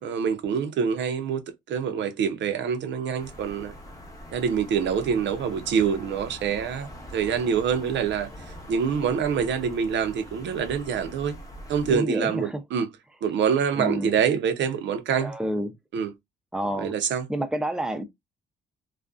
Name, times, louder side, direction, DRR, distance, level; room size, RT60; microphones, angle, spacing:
voice 1, 0.0-1.4 1.7-3.7 4.3-8.3 8.7-11.3 11.7-12.9 13.2-15.3 15.9-16.1 16.8-17.2, right 7 dB, 65° right, 0.6 m, -25 dB
sound 1, 3.2-12.0, equal, 15° left, 0.9 m, -43 dB
voice 2, 11.8-12.6 13.7-14.1 15.2-15.7 16.5-16.9 17.3-18.0, right 1 dB, 5° right, 0.5 m, -29 dB
2.4 x 2.2 x 2.4 m
cardioid pair, 90°, 20 cm